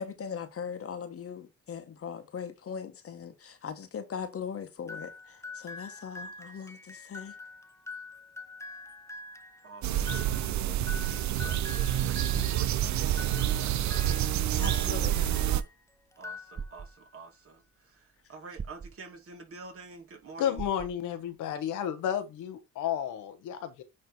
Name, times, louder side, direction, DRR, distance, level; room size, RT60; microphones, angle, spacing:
voice 1, 0.0-7.3 14.6-15.5, left 7 dB, 50° left, 1.4 m, -40 dB
sound 1, 4.9-15.7 16.1-17.0, left 3 dB, 10° left, 0.7 m, -45 dB
voice 2, 9.6-15.7 16.1-20.6, right 5 dB, 50° right, 2.7 m, -49 dB
sound 2, 9.8-15.6, right 12 dB, 65° right, 0.7 m, -28 dB
sound 3, 14.4-14.8 16.5-16.9 18.6-18.9 20.6-20.9, right 5 dB, 20° right, 0.5 m, -40 dB
voice 3, 20.4-23.8, left 9 dB, 85° left, 1.2 m, -32 dB
9.7 x 3.3 x 4.2 m
cardioid pair, 90°, 30 cm